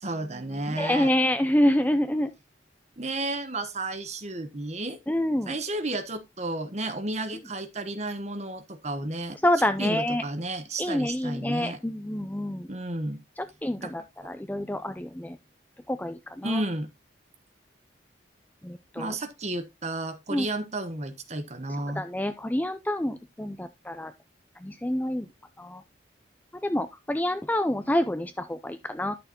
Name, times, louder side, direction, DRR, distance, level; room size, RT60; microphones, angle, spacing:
voice 1, 0.0-1.1 3.0-5.0 5.5-11.8 12.7-13.2 13.8-13.9 14.2-14.3 16.4-16.9 19.0-22.0, right 2 dB, 35° right, 1.1 m, -32 dB
voice 2, 0.8-2.3 5.1-5.5 9.4-10.2 10.8-12.7 13.6-15.4 15.9-16.6 18.6-19.1 20.3-20.5 22.0-24.1 24.6-25.3 25.6-25.8 26.6-29.2, left 1 dB, 10° left, 0.5 m, -27 dB
11.0 x 6.6 x 2.9 m
head